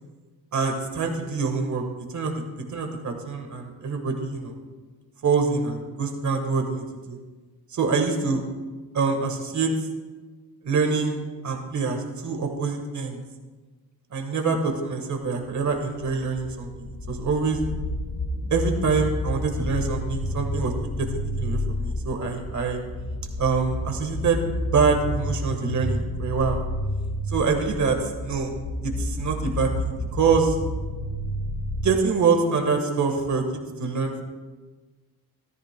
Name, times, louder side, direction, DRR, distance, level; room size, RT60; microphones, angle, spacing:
voice 1, 0.5-1.8 2.1-4.5 5.2-7.2 7.7-8.4 8.9-9.7 10.6-11.2 11.4-13.2 14.1-17.6 18.5-21.1 21.4-22.8 23.4-26.6 27.3-28.5 28.8-30.6 31.8-33.4 33.8-34.2, right 4 dB, 50° right, 3 dB, 1.5 m, -25 dB
sound 1, 15.5-31.9, left 1 dB, 55° left, 1.4 m, -30 dB
14.0 x 13.5 x 2.2 m, 1.3 s
wide cardioid pair, 135°, 38 cm